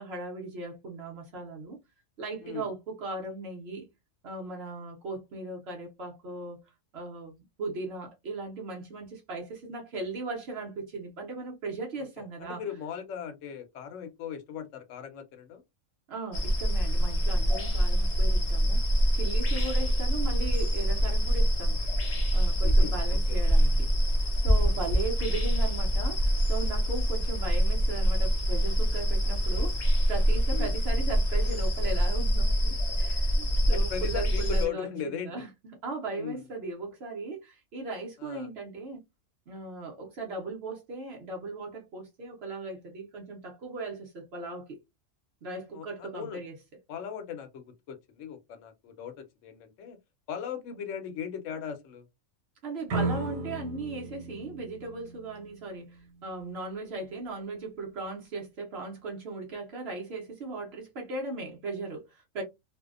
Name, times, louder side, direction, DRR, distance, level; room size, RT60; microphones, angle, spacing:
voice 1, 0.0-1.8 2.2-3.9 4.2-12.6 16.1-21.8 22.3-23.9 24.4-29.8 30.1-35.5 35.8-39.0 39.5-44.8 45.4-46.6 52.6-62.4, right 3 dB, 60° right, 0.8 m, -38 dB
voice 2, 12.4-15.6 19.4-19.9 22.6-23.4 24.6-24.9 30.5-30.7 33.1-33.2 33.7-35.3 36.1-36.4 38.2-38.5 45.7-46.4 46.9-50.0 50.3-52.0, left 8 dB, 70° left, 0.9 m, -38 dB
sound 1, 16.3-34.7, equal, 55° left, 0.4 m, -25 dB
sound 2, 52.9-55.8, right 3 dB, 85° right, 1.1 m, -34 dB
2.6 x 2.0 x 2.4 m
omnidirectional pair, 1.4 m